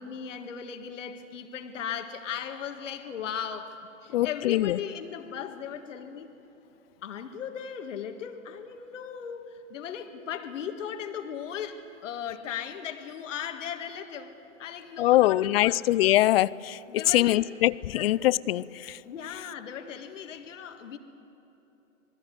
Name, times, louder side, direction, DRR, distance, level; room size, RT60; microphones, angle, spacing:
voice 1, 0.0-3.8 4.0-6.3 7.0-14.3 14.6-15.9 16.9-17.5 17.9-18.1 19.0-21.0, left 8 dB, 65° left, 6 dB, 1.9 m, -37 dB
voice 2, 4.1-4.8 15.0-16.8 17.1-19.0, left 15 dB, 50° left, 21 dB, 0.6 m, -23 dB
26.5 x 20.5 x 7.9 m, 2.9 s
hypercardioid pair, 115°, 40 cm